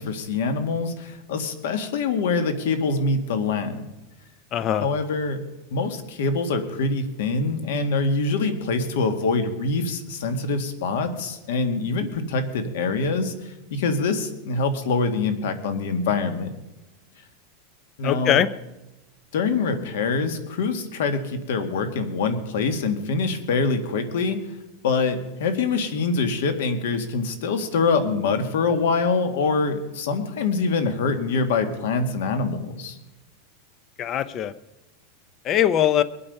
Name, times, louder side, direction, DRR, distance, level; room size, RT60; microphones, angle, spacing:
voice 1, 0.0-3.9 4.8-5.4 5.7-16.6 18.0-18.4 19.3-24.5 24.8-33.0, left 4 dB, 75° left, 8 dB, 2.0 m, -25 dB
voice 2, 4.5-4.9 18.0-18.5 34.0-34.5 35.4-36.0, left 11 dB, 30° left, 15 dB, 0.5 m, -21 dB
22.0 x 8.7 x 5.5 m, 1.0 s
supercardioid pair, 165°, 0 cm